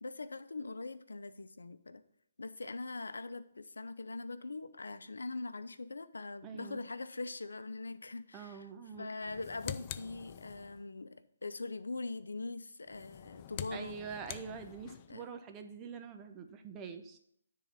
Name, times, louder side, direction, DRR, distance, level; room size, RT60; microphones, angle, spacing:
voice 1, 0.0-2.0 2.4-8.7 9.0-13.9 15.1-15.2, left 3 dB, 85° left, 12 dB, 0.6 m, -42 dB
voice 2, 6.4-6.8 8.3-9.1 13.7-17.2, right 6 dB, 20° right, 6 dB, 0.8 m, -45 dB
sound 1, 9.2-10.9 12.8-15.2, left 11 dB, 30° left, 0.4 m, -46 dB
10.0 x 3.8 x 6.9 m, 0.69 s
hypercardioid pair, 145°, 0 cm